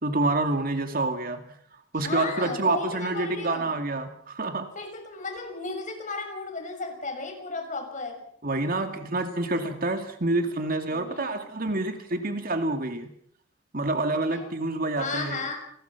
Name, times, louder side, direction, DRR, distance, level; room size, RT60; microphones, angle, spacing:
voice 1, 0.0-1.6 1.9-4.7 8.4-13.1 13.7-15.5, right 2 dB, 45° right, 2.3 m, -27 dB
voice 2, 1.9-3.7 4.7-8.2 10.9-11.4 14.3-14.5 15.0-15.5, left 3 dB, 40° left, 6.7 m, -34 dB
29.0 x 20.0 x 5.9 m
head